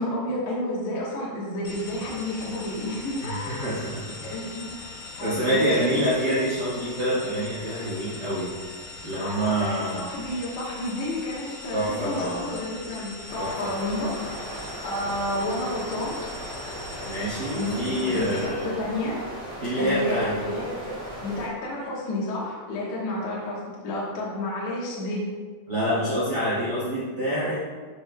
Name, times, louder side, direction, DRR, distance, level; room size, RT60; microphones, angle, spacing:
voice 1, 0.0-3.7 4.2-4.7 5.2-5.9 9.1-14.5 14.8-16.2 17.5-19.2 19.8-25.3, left 1 dB, 60° left, -5 dB, 2.3 m, -31 dB
sound 1, 1.7-18.5, left 2 dB, 90° left, 2.9 m, -41 dB
voice 2, 3.6-4.0 5.2-8.5 9.0-10.1 11.7-12.4 13.4-13.9 17.0-18.8 19.6-20.3 25.7-27.5, equal, 65° right, -11 dB, 0.9 m, -26 dB
sound 2, 13.3-21.5, equal, 5° left, 0.4 m, -37 dB
12.5 x 5.2 x 2.3 m, 1.5 s
omnidirectional pair, 4.4 m